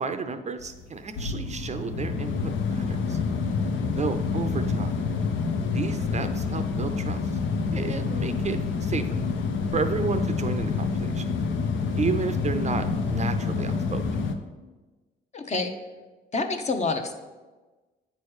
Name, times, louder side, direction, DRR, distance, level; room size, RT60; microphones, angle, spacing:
voice 1, 0.0-3.2 3.9-4.9 5.7-7.2 7.7-9.1 9.7-11.3 12.0-14.0, right 4 dB, 35° right, 9 dB, 0.5 m, -31 dB
sound 1, 0.6-14.3, left 4 dB, 75° left, 0.7 m, -28 dB
voice 2, 15.3-15.7 16.3-17.1, left 3 dB, 35° left, 5 dB, 0.9 m, -27 dB
8.9 x 3.2 x 6.3 m, 1.2 s
cardioid pair, 90°, 20 cm